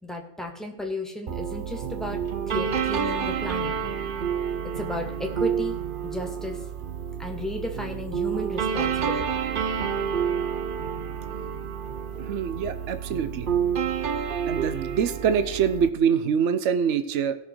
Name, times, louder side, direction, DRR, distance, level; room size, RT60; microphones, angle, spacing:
voice 1, 0.0-2.2 2.5-3.7 4.8-5.8 6.0-6.6 7.2-9.3, left 1 dB, ahead, 1 dB, 2.1 m, -33 dB
sound 1, 1.3-15.9, right 7 dB, 50° right, 0.9 m, -29 dB
voice 2, 12.3-13.5 14.5-17.3, right 7 dB, 75° right, 11 dB, 1.1 m, -24 dB
17.5 x 6.4 x 4.6 m, 0.88 s
omnidirectional pair, 1.3 m